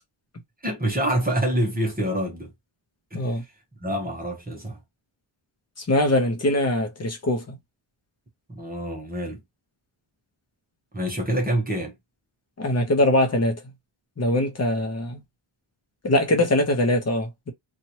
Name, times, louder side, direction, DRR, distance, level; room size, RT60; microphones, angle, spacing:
voice 1, 0.6-2.5 3.1-3.3 3.8-4.8 8.5-9.4 10.9-12.0, right 1 dB, 20° right, 0.9 m, -26 dB
voice 2, 5.8-7.6 12.6-13.6 14.2-15.2 16.0-17.5, left 1 dB, 30° left, 0.9 m, -22 dB
2.9 x 2.5 x 2.9 m
wide cardioid pair, 150°, 49 cm